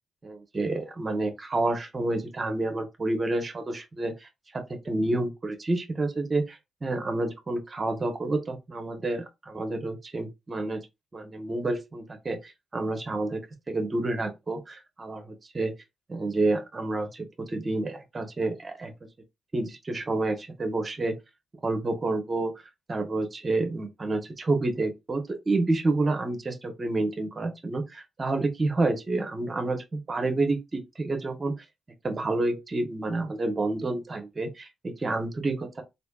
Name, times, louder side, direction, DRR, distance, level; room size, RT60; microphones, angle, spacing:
voice 1, 0.2-10.8 11.1-15.7 16.1-18.9 19.5-21.2 21.6-22.5 22.9-31.5 32.0-35.8, right 2 dB, 35° right, 1.0 m, -29 dB
3.2 x 2.6 x 2.4 m
hypercardioid pair, 40°, 0 cm